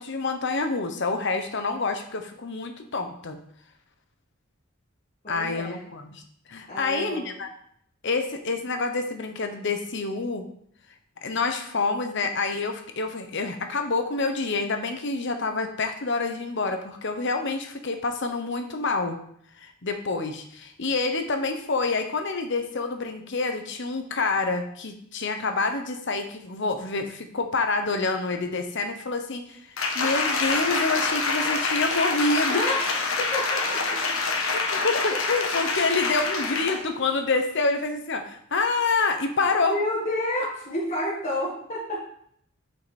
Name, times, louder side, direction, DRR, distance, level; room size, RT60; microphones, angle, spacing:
voice 1, 0.0-3.4 5.3-6.2 6.5-7.5 8.0-10.4 11.2-19.2 19.6-32.6 34.5-39.8, left 3 dB, 60° left, 6 dB, 1.0 m, -27 dB
voice 2, 5.2-5.9 6.7-7.3 32.5-34.2 35.1-35.2 36.0-36.3 39.6-42.0, left 1 dB, 35° left, -6 dB, 1.8 m, -30 dB
Applause, 29.8-36.9 37.3-37.4, left 3 dB, 75° left, 1.2 m, -26 dB
7.9 x 5.6 x 4.3 m, 0.67 s
head